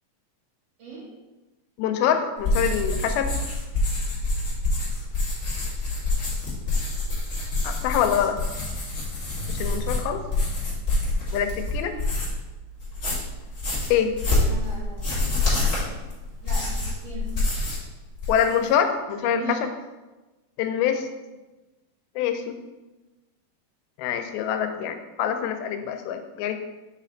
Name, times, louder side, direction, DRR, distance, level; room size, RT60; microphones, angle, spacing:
voice 1, 0.8-1.2 14.4-15.3 16.4-17.3 19.2-19.6, right 4 dB, 65° right, -5 dB, 2.8 m, -37 dB
voice 2, 1.8-3.3 7.6-8.4 9.5-10.2 11.3-11.9 13.9-14.1 18.3-19.4 20.6-21.1 22.2-22.6 24.0-26.6, left 9 dB, 90° left, 7 dB, 2.4 m, -25 dB
sound 1, 2.4-12.4 12.8-17.9 18.1-18.7, left 2 dB, 30° left, 1.6 m, -27 dB
sound 2, 9.3-19.2, right 2 dB, 90° right, 3.5 m, -44 dB
8.1 x 3.3 x 3.8 m, 1.1 s
omnidirectional pair, 4.3 m